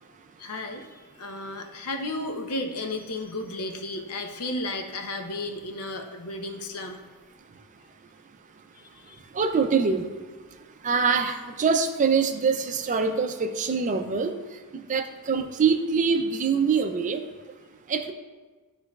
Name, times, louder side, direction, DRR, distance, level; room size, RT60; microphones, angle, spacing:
voice 1, 0.4-7.0 8.7-9.2, left 2 dB, 85° left, 4 dB, 0.7 m, -34 dB
voice 2, 9.3-10.0 10.8-14.3 14.9-17.2 17.9-18.1, right 5 dB, 35° right, 7 dB, 0.4 m, -24 dB
11.0 x 4.0 x 2.3 m, 1.3 s
head